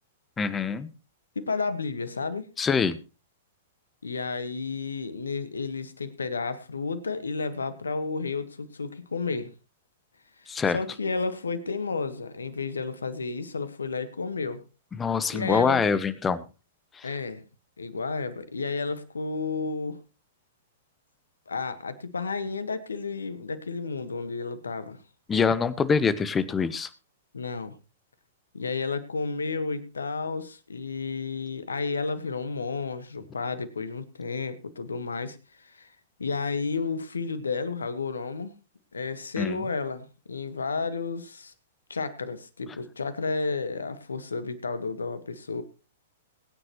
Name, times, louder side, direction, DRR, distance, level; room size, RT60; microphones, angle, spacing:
voice 1, 0.4-0.9 2.6-3.0 10.5-10.8 15.0-16.4 17.0-17.1 25.3-26.9 39.4-39.6, left 5 dB, 15° left, 16 dB, 1.1 m, -25 dB
voice 2, 1.3-2.5 4.0-9.5 10.4-14.6 15.3-15.8 17.0-17.4 17.8-20.0 21.5-25.0 27.3-27.8 28.5-35.9 36.2-38.5 38.9-41.5 41.9-45.6, left 4 dB, 80° left, 13 dB, 1.5 m, -32 dB
21.5 x 9.5 x 3.1 m, 0.32 s
figure-of-eight pair, 105°, 0 cm